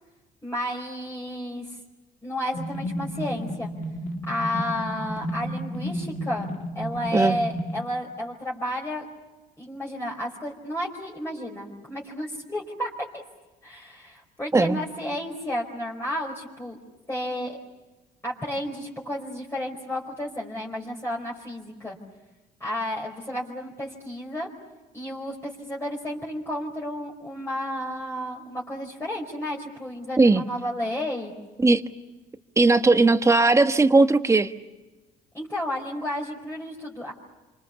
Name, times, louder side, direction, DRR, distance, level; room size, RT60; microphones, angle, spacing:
voice 1, 0.4-1.7 2.2-3.7 4.3-6.5 6.7-9.0 9.6-13.2 13.6-16.8 17.1-17.6 18.2-22.0 22.6-24.5 24.9-31.3 35.3-37.1, left 1 dB, 15° left, -4 dB, 4.8 m, -32 dB
sound 1, 2.5-7.8, equal, 55° left, 2.5 m, -32 dB
voice 2, 32.6-34.5, right 3 dB, 15° right, 8 dB, 1.3 m, -18 dB
28.0 x 26.0 x 7.1 m, 1.1 s
cardioid pair, 110°, 17 cm